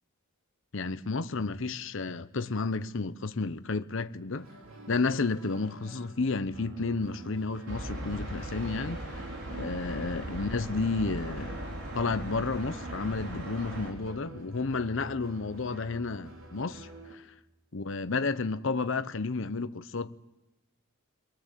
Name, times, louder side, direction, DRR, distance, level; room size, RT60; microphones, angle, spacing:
voice 1, 0.7-4.5 4.9-9.0 9.5-17.2 17.7-20.2, left 3 dB, 60° left, 0.8 m, -31 dB
sound 1, 4.3-17.1, right 2 dB, 70° right, 3.2 m, -49 dB
sound 2, 7.7-13.9, right 1 dB, 55° right, 4.2 m, -38 dB
23.0 x 22.5 x 7.5 m
head